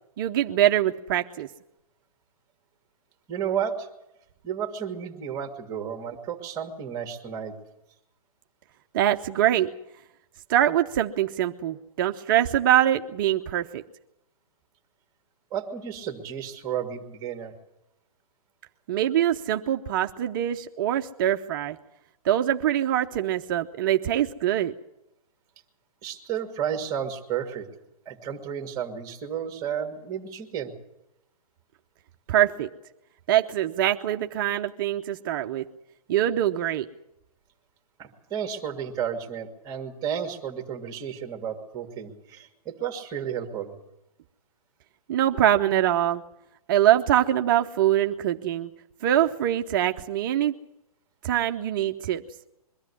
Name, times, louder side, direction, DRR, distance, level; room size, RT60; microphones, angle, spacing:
voice 1, 0.2-1.5 8.9-9.7 10.5-13.8 18.9-21.8 22.2-24.7 32.3-32.7 33.3-35.7 36.1-36.9 45.1-46.2 46.7-48.7 49.0-50.5 51.2-52.2, right 12 dB, 35° right, 5 dB, 0.7 m, -23 dB
voice 2, 3.3-3.9 4.4-7.6 15.5-17.5 26.0-27.7 28.1-30.7 38.0-43.7, right 8 dB, 20° right, 5 dB, 1.9 m, -32 dB
22.5 x 13.5 x 9.8 m, 0.88 s
hypercardioid pair, 155°, 19 cm